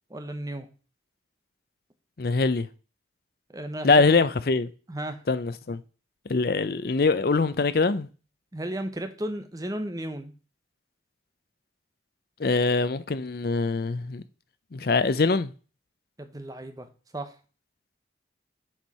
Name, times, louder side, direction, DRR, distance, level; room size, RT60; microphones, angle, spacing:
voice 1, 0.1-0.7 3.5-4.2 4.9-5.2 8.5-10.3 16.2-16.9 17.1-17.3, right 1 dB, 20° right, 0.8 m, -34 dB
voice 2, 2.2-2.7 3.8-4.7 5.3-5.8 6.3-8.1 12.4-14.2 14.7-15.5, left 3 dB, 50° left, 0.5 m, -23 dB
7.4 x 4.6 x 5.4 m
head